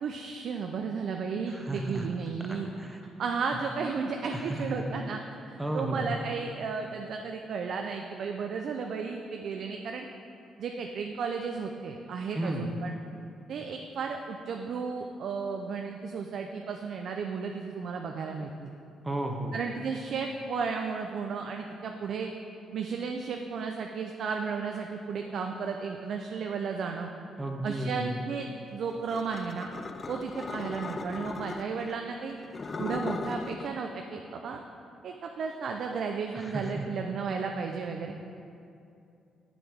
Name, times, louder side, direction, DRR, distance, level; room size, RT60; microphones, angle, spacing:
voice 1, 0.0-2.7 3.2-5.2 5.5-10.1 10.6-12.9 13.5-18.7 19.5-22.3 22.7-27.1 27.6-29.7 30.1-32.4 32.8-34.6 35.0-38.1, right 5 dB, 65° right, 3 dB, 0.4 m, -34 dB
voice 2, 1.5-2.1 2.5-3.0 3.4-3.5 4.3-4.8 5.6-6.1 12.4-12.8 19.0-19.6 27.4-28.2 36.3-36.9, right 1 dB, 15° right, 3 dB, 0.8 m, -33 dB
sound 1, 29.1-31.9 32.4-33.7, left 4 dB, 35° left, 0.3 m, -37 dB
7.7 x 7.1 x 3.5 m, 2.6 s
cardioid pair, 90°, 0 cm